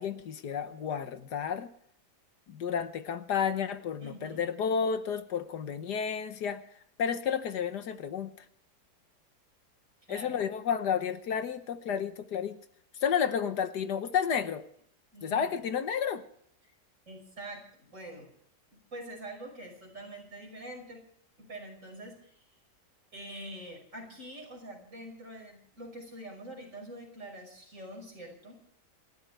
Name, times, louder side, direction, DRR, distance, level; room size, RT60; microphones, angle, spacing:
voice 1, 0.0-1.7 2.5-6.6 7.0-8.3 10.1-12.6 13.0-14.6 15.2-16.2, left 7 dB, 75° left, 10 dB, 1.6 m, -31 dB
voice 2, 4.0-4.4 10.1-10.5 15.1-15.7 17.1-18.3 18.9-21.0 21.4-22.5 23.1-28.6, right 1 dB, 45° right, 2 dB, 6.1 m, -45 dB
28.0 x 13.5 x 3.4 m, 0.66 s
omnidirectional pair, 1.8 m